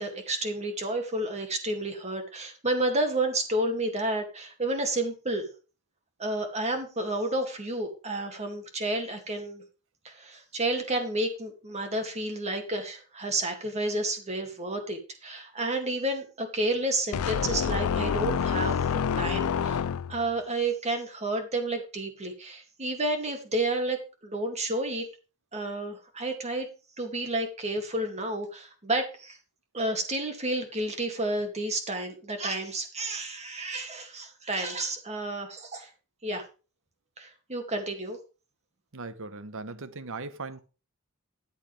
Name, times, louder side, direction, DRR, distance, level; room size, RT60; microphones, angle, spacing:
voice 1, 0.0-5.5 6.2-9.6 10.0-18.8 19.2-19.8 20.1-25.1 25.5-26.7 27.0-29.4 29.7-35.9 36.2-36.4 37.2-38.2, right 2 dB, 30° right, 2.3 m, -31 dB
sound 1, 17.1-20.3, left 7 dB, 70° left, 0.4 m, -27 dB
voice 2, 38.9-40.6, right 3 dB, 65° right, 1.0 m, -38 dB
13.5 x 8.3 x 3.4 m
head